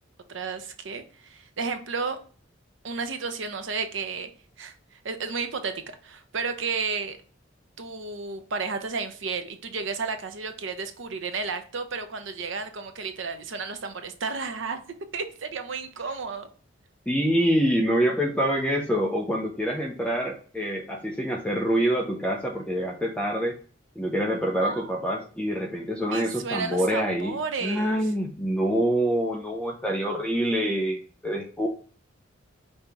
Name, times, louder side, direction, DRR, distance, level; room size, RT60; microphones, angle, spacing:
voice 1, 0.3-2.2 2.8-4.3 4.6-7.2 7.8-14.8 15.1-16.5 24.6-25.0 26.1-28.1, right 4 dB, 75° right, 8 dB, 0.7 m, -32 dB
voice 2, 17.1-23.6 24.0-27.4 27.6-31.7, equal, 5° left, 0 dB, 0.5 m, -26 dB
5.3 x 2.8 x 3.5 m, 0.40 s
head